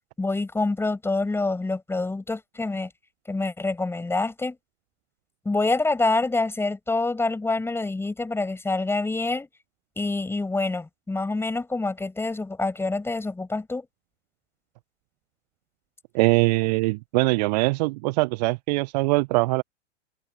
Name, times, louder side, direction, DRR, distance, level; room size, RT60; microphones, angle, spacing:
voice 1, 0.2-2.9 3.3-4.6 5.4-9.5 10.0-13.9, left 3 dB, 5° left, 6.2 m, -26 dB
voice 2, 16.1-19.6, right 24 dB, 35° right, 0.9 m, -22 dB
figure-of-eight pair, 105°, 36 cm